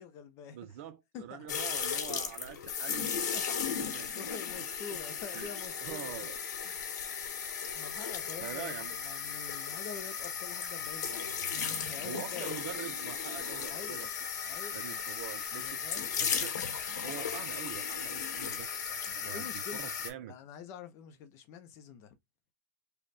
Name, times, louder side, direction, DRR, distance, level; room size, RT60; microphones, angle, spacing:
voice 1, 0.0-0.6 1.1-1.5 2.9-6.3 7.7-12.5 13.7-14.1 14.4-15.1 15.5-16.1 19.1-22.2, left 7 dB, 30° left, 0.6 m, -47 dB
voice 2, 0.5-4.3 4.9-5.0 5.3-5.5 5.8-6.4 6.6-6.8 8.4-9.0 12.0-14.1 14.7-15.8 16.2-16.6 17.0-20.3, right 11 dB, 45° right, 0.6 m, -45 dB
sound 1, 1.5-20.1, left 7 dB, 80° left, 1.2 m, -36 dB
3.3 x 2.2 x 4.0 m
supercardioid pair, 160°, 9 cm